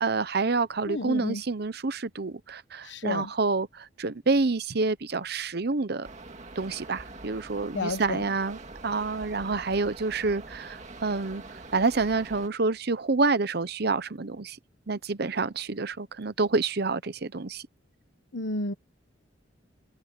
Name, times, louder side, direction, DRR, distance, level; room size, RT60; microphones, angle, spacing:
voice 1, 0.0-6.1 6.6-11.4 11.7-14.6 14.9-17.7, right 3 dB, 55° right, 0.9 m, -28 dB
voice 2, 0.9-1.4 2.8-3.3 7.7-8.3 18.3-18.7, left 2 dB, 70° left, 1.3 m, -31 dB
sound 1, 6.0-12.5, right 3 dB, 40° right, 2.1 m, -44 dB
head